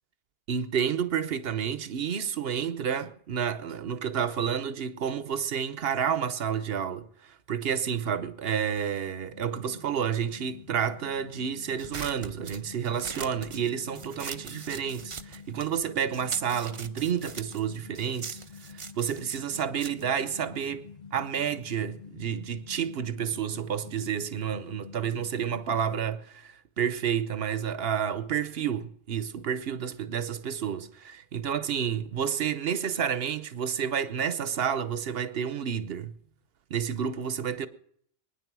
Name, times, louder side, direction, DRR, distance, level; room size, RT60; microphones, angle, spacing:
voice 1, 0.5-18.4 18.7-36.2 36.7-37.7, right 8 dB, 55° right, 1.0 m, -30 dB
sound 1, 9.3-26.0, left 5 dB, 35° left, 1.1 m, -48 dB
sound 2, 11.8-15.8 16.1-20.9, right 5 dB, 35° right, 0.5 m, -42 dB
22.0 x 10.0 x 6.1 m
omnidirectional pair, 1.3 m